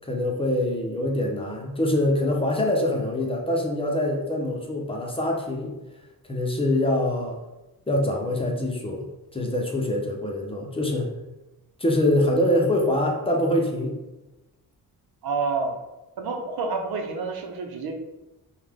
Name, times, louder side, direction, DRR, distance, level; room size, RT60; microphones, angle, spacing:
voice 1, 0.0-5.7 6.3-7.4 7.9-9.1 9.3-11.1 11.8-14.0, left 1 dB, 15° left, 0 dB, 0.8 m, -24 dB
voice 2, 15.2-15.8 16.2-17.9, right 4 dB, 90° right, 3 dB, 0.8 m, -28 dB
5.5 x 2.4 x 3.5 m, 1.0 s
wide cardioid pair, 120°, 36 cm